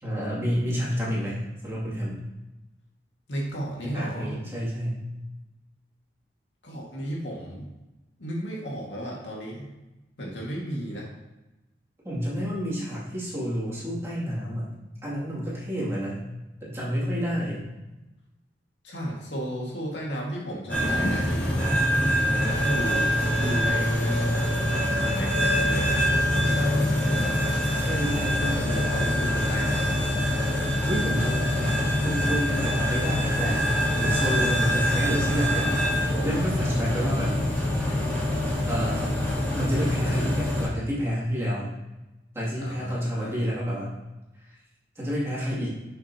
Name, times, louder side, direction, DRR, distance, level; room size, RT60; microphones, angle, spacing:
voice 1, 0.0-2.2 3.8-5.1 12.0-14.7 15.0-16.2 16.6-17.6 27.8-28.6 30.9-33.7 34.0-35.7 36.0-37.3 38.7-39.1 39.5-41.7 42.3-43.9 44.4-44.6 45.0-45.7, equal, 15° right, -8 dB, 2.6 m, -29 dB
voice 2, 3.3-4.4 6.6-7.7 8.2-9.7 10.2-11.1 18.8-21.9 22.6-24.3 24.7-27.6 28.4-30.0 30.2-30.3 42.6-43.5, equal, 80° left, -3 dB, 2.0 m, -34 dB
sound 1, 20.7-40.7, left 1 dB, 10° left, 2.7 m, -25 dB
8.4 x 6.7 x 2.9 m, 1.0 s
head